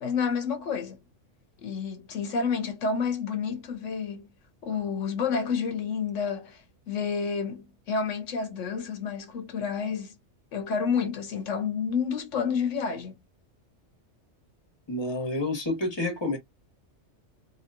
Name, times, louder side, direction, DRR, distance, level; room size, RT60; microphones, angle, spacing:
voice 1, 0.0-1.0 1.6-4.3 4.6-10.1 10.5-13.1, left 6 dB, 85° left, 1.2 m, -29 dB
voice 2, 14.9-16.4, left 2 dB, 20° left, 1.2 m, -29 dB
2.9 x 2.7 x 2.5 m
omnidirectional pair, 1.2 m